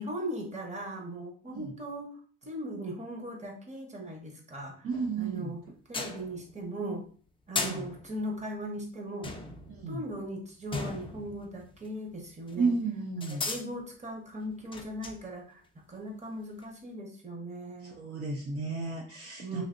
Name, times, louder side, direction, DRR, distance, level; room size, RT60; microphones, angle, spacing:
voice 1, 0.0-2.1 2.4-4.9 5.2-5.6 5.9-7.0 7.5-9.3 9.9-12.8 13.3-18.0 19.4-19.6, right 1 dB, 25° right, 1 dB, 1.0 m, -38 dB
voice 2, 4.8-5.6 7.5-7.9 9.7-10.0 12.6-13.5 17.8-19.6, right 4 dB, 50° right, -1 dB, 0.6 m, -33 dB
sound 1, 4.9-5.5 5.9-6.7 7.6-8.5 9.2-12.1 12.5-12.6 13.2-13.7 14.5-15.3 16.6-16.7, left 3 dB, 15° left, 0.4 m, -38 dB
3.1 x 2.8 x 2.6 m, 0.43 s
cardioid pair, 90°, 30 cm